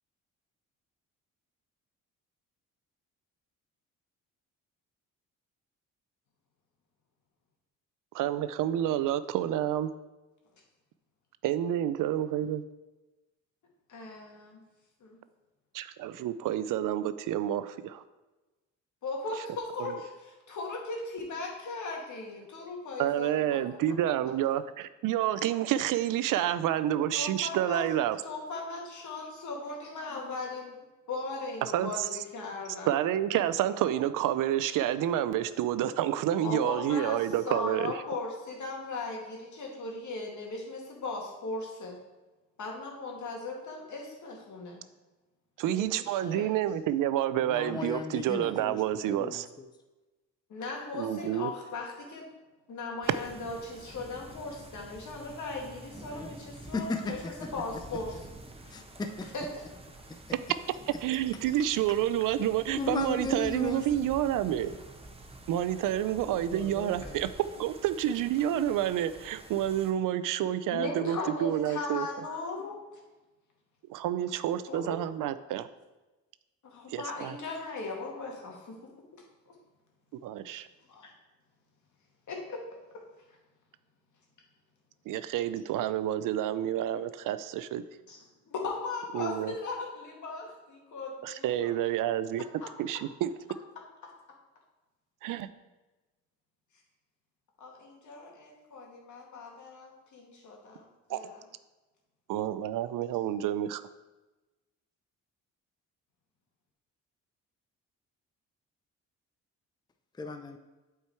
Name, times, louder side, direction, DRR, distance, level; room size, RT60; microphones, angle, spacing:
voice 1, 8.1-9.9 11.4-12.6 15.7-18.0 19.8-19.9 23.0-28.2 31.6-32.1 32.9-38.0 45.6-49.5 50.9-51.5 61.0-64.7 65.5-67.3 67.6-72.1 73.9-75.7 76.9-77.4 80.2-80.7 85.1-87.8 89.1-89.5 91.2-92.4 92.8-93.3 95.2-95.5 101.1-101.2 102.3-103.8, right 11 dB, 70° right, 14 dB, 0.5 m, -29 dB
voice 2, 13.9-14.6 15.0-15.2 19.0-23.8 27.1-27.9 28.2-30.8 31.1-33.0 36.4-42.0 42.6-44.8 45.6-46.5 50.5-52.3 52.7-57.2 57.5-58.2 58.7-58.8 59.3-59.4 70.7-72.8 74.7-75.0 76.6-78.8 79.1-79.2 80.9-81.1 82.3-82.6 88.1-88.2 88.5-91.8 92.6-92.7 94.0-94.1 97.6-101.4, left 3 dB, 60° left, 0 dB, 2.0 m, -38 dB
voice 3, 47.4-48.8 49.2-49.7 56.1-56.3 56.6-57.5 58.7-59.3 60.1-60.2 62.7-64.1 66.5-67.2 110.1-110.6, left 3 dB, 15° left, 6 dB, 0.6 m, -36 dB
sound 1, 53.0-69.9, right 2 dB, 15° right, 1.1 m, -48 dB
8.2 x 4.6 x 4.4 m, 1.1 s
cardioid pair, 75°, 33 cm